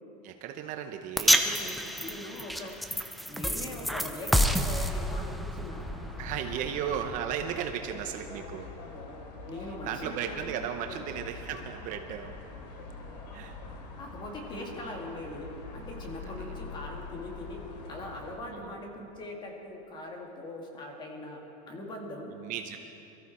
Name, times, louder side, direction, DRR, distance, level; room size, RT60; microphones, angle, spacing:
voice 1, 0.2-1.4 6.2-8.7 9.8-12.4 13.3-13.6 16.2-16.5 18.5-18.7 22.3-22.8, right 9 dB, 40° right, 6 dB, 0.8 m, -35 dB
sound 1, 1.2-7.5, equal, ahead, 0.4 m, -29 dB
voice 2, 1.3-1.7 2.0-2.8 3.3-5.9 9.5-10.6 10.8-11.0 14.0-22.4, left 1 dB, 20° left, 1 dB, 2.4 m, -41 dB
sound 2, 5.7-18.4, left 3 dB, 75° left, 3.0 m, -44 dB
23.0 x 14.0 x 4.3 m, 2.9 s
supercardioid pair, 150°, 21 cm